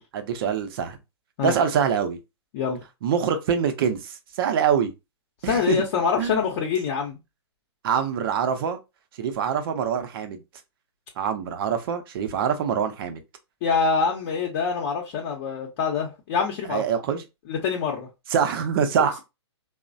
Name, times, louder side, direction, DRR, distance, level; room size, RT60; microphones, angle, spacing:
voice 1, 0.1-1.0 1.4-2.2 3.0-4.9 5.4-5.8 6.2-6.5 7.8-8.8 9.2-10.4 11.2-13.2 16.7-17.2 18.3-19.2, right 7 dB, 55° right, 0.6 m, -24 dB
voice 2, 5.4-7.2 13.6-16.8 17.5-18.1, left 5 dB, 45° left, 0.7 m, -25 dB
3.0 x 2.1 x 2.6 m
hypercardioid pair, 130°, 15 cm